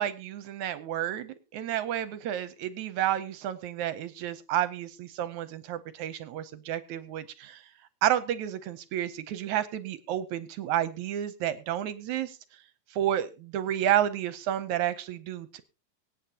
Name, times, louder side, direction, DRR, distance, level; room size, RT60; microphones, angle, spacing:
voice 1, 0.0-7.7 8.0-12.4 12.9-15.6, right 11 dB, 75° right, 13 dB, 2.0 m, -30 dB
24.5 x 9.1 x 2.8 m, 0.31 s
omnidirectional pair, 3.6 m